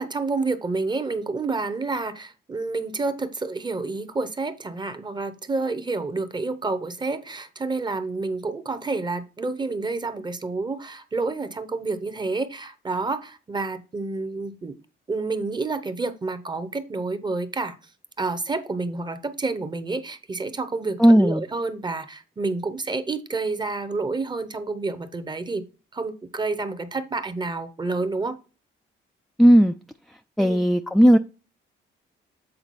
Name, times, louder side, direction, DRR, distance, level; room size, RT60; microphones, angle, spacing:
voice 1, 0.0-14.8 15.1-17.8 18.2-25.6 25.9-28.4 30.4-30.6, right 3 dB, 20° right, 0.8 m, -29 dB
voice 2, 21.0-21.4 29.4-29.7 30.4-31.2, equal, ahead, 0.3 m, -15 dB
7.8 x 3.9 x 4.1 m
cardioid pair, 90°, 20 cm